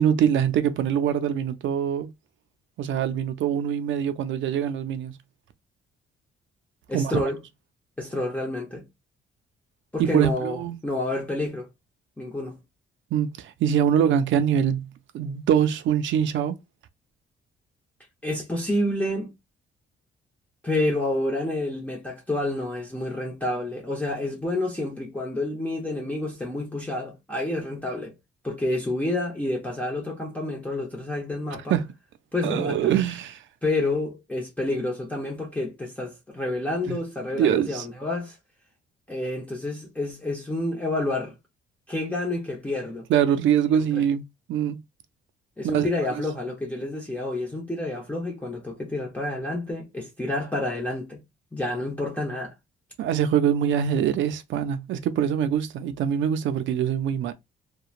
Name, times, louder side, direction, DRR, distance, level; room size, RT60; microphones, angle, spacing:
voice 1, 0.0-2.1 2.8-5.1 6.9-7.2 10.0-10.8 13.1-16.6 31.7-31.8 32.4-33.4 36.9-37.0 37.4-37.9 43.1-44.8 45.6-45.9 53.0-57.3, right 9 dB, 70° right, 0.5 m, -23 dB
voice 2, 6.9-7.4 8.0-8.8 9.9-11.7 12.2-12.6 18.2-19.3 20.6-28.1 28.4-31.7 32.3-32.9 33.6-38.4 39.1-41.3 41.9-43.1 43.7-44.0 45.6-51.2 51.5-52.5, left 2 dB, 5° left, 0.8 m, -29 dB
2.8 x 2.2 x 2.4 m
cardioid pair, 90°, 20 cm